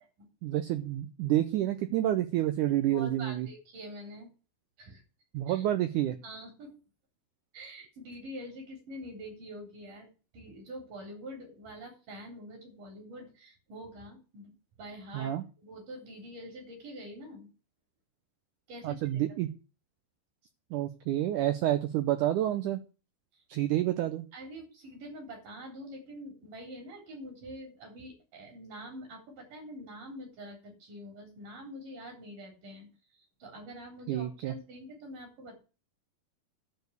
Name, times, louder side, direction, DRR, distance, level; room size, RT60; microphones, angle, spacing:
voice 1, 0.4-3.5 5.3-6.2 15.1-15.4 18.8-19.6 20.7-22.8 23.5-24.3 34.1-34.5, right 13 dB, 80° right, 9 dB, 1.9 m, -29 dB
voice 2, 2.9-4.3 4.8-5.0 5.5-5.6 6.2-6.8 7.5-14.5 14.8-17.5 18.7-19.2 23.3-23.4 24.3-35.6, equal, 60° right, 2 dB, 5.1 m, -45 dB
12.0 x 4.7 x 8.0 m, 0.34 s
omnidirectional pair, 4.3 m